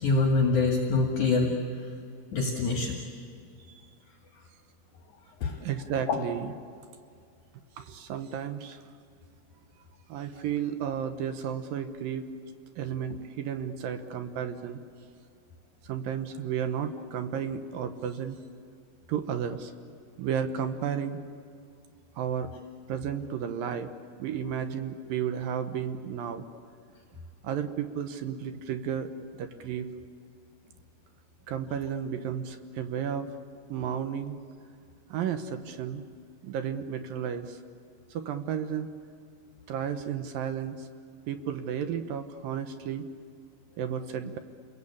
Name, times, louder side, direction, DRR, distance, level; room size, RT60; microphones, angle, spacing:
voice 1, 0.0-1.5 2.3-3.0 5.4-5.6 6.1-6.2, left 3 dB, 50° left, 1 dB, 3.1 m, -25 dB
voice 2, 5.6-6.5 7.8-8.8 10.1-12.3 12.8-14.8 15.8-18.4 19.1-19.7 20.2-21.2 22.2-22.5 22.9-23.9 24.2-26.5 27.4-29.1 29.4-29.9 31.5-33.3 33.7-34.4 35.1-36.1 36.4-37.6 38.1-38.9 39.7-40.9 41.3-43.1 43.8-44.4, right 8 dB, 70° right, 8 dB, 2.3 m, -33 dB
29.0 x 22.0 x 8.6 m, 2.3 s
omnidirectional pair, 5.1 m